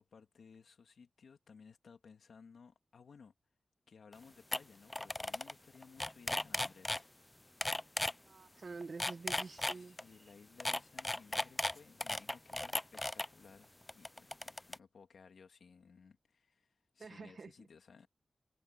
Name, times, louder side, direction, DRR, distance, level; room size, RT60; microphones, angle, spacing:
voice 1, 0.0-3.3 3.9-7.2 9.3-18.1, left 5 dB, 90° left, 2.0 m, -59 dB
sound 1, 4.1-4.2 4.5-4.6 4.9-5.5 5.8-7.0 7.6-8.1 8.8-10.0 10.6-13.3 13.9-14.7, left 1 dB, 20° left, 0.4 m, -36 dB
voice 2, 8.3-10.0 17.0-17.7, right 4 dB, 65° right, 1.3 m, -47 dB
wide cardioid pair, 80°, 0 cm